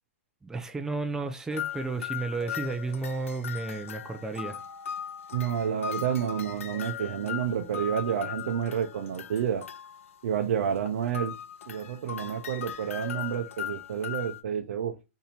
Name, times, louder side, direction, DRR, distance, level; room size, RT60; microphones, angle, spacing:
voice 1, 0.4-4.6, right 3 dB, 5° right, 0.5 m, -32 dB
sound 1, 1.5-10.3 10.8-14.4, left 9 dB, 85° left, 0.5 m, -38 dB
voice 2, 5.3-9.6 10.2-11.3 11.7-15.0, right 8 dB, 70° right, 0.5 m, -29 dB
2.7 x 2.6 x 4.3 m
hypercardioid pair, 135°, 7 cm